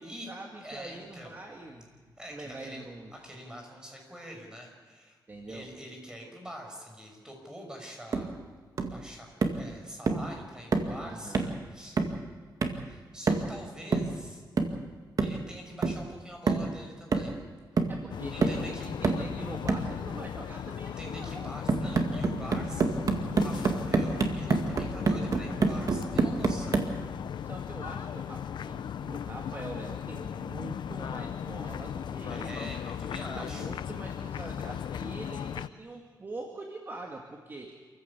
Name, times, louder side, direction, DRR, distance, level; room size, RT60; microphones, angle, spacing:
voice 1, 0.0-2.0 2.3-3.1 5.3-5.7 11.0-11.6 17.9-21.5 27.4-32.7 33.3-37.9, right 2 dB, 30° right, 1 dB, 2.1 m, -43 dB
voice 2, 0.6-1.4 2.2-2.9 3.1-5.2 5.5-8.3 8.8-11.4 11.7-12.0 12.8-14.4 15.2-17.4 18.3-18.9 20.8-26.9 32.3-33.7, equal, 10° right, 1 dB, 5.9 m, -45 dB
sound 1, 8.1-8.3 8.8-9.0 9.4-9.7 10.1-10.3 10.7-11.0 11.3-11.6 12.0-12.2 12.6-12.9 13.3-13.6 13.9-14.2 14.6-14.8 15.2-15.4 15.8-16.1 16.5-16.7 17.1-17.5 17.8-18.0 18.4-18.7 19.0-19.3 19.7-19.9 21.7-27.0, right 4 dB, 50° right, 2.0 m, -28 dB
sound 2, 18.1-35.7, left 8 dB, 80° left, 0.6 m, -37 dB
27.5 x 15.0 x 8.4 m, 1.5 s
wide cardioid pair, 140°, 8 cm